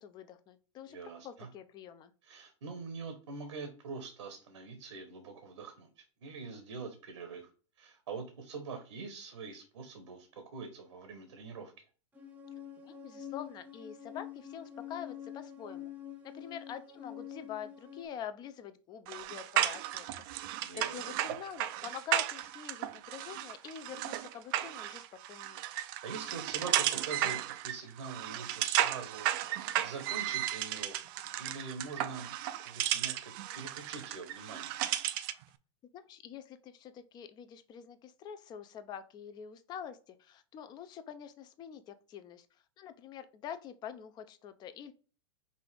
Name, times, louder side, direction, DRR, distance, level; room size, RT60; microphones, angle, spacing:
voice 1, 0.0-2.1 12.8-15.9 16.2-20.1 20.8-25.6 35.9-42.5 42.8-44.9, left 8 dB, 25° left, 11 dB, 0.5 m, -46 dB
voice 2, 0.9-1.5 2.2-7.5 7.8-11.7 20.6-21.2 25.7-29.3 29.8-31.0 31.3-32.3 32.6-34.8, right 4 dB, 85° right, 5 dB, 1.1 m, -44 dB
sound 1, 12.1-18.1, left 10 dB, 10° right, 0.9 m, -46 dB
sound 2, 19.1-35.4, right 13 dB, 45° right, 0.4 m, -34 dB
5.4 x 2.5 x 3.3 m, 0.37 s
hypercardioid pair, 125°, 16 cm